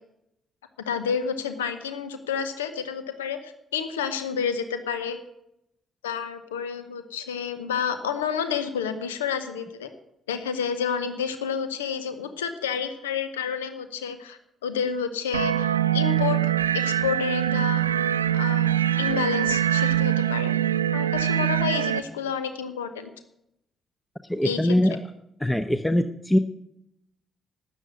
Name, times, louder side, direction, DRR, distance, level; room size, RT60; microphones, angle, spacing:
voice 1, 0.8-5.2 6.0-9.9 10.3-17.8 18.3-20.5 20.9-23.1 24.4-24.7, left 7 dB, 75° left, 10 dB, 0.9 m, -30 dB
sound 1, 15.3-22.0, right 11 dB, 85° right, 0.4 m, -23 dB
voice 2, 24.2-25.0 25.4-26.4, left 1 dB, 10° left, 10 dB, 0.9 m, -22 dB
13.0 x 9.0 x 9.4 m, 0.80 s
figure-of-eight pair, 40°, 0 cm